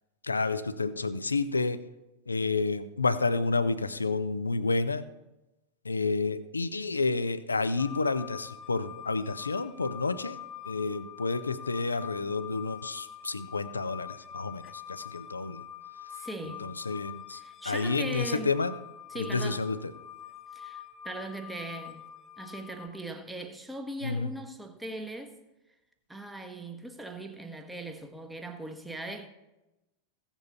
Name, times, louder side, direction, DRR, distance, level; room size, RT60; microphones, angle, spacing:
voice 1, 0.2-1.8 2.3-5.1 5.8-10.4 10.6-15.6 16.4-18.7 19.1-19.9 24.0-24.3, left 3 dB, 80° left, 0.5 m, -30 dB
sound 1, 7.8-22.9, left 10 dB, 30° left, 0.7 m, -45 dB
voice 2, 16.1-16.7 17.3-18.6 19.1-19.6 20.5-25.3 26.1-29.3, right 2 dB, 5° right, 1.1 m, -39 dB
15.5 x 7.2 x 4.1 m
figure-of-eight pair, 90°, 0 cm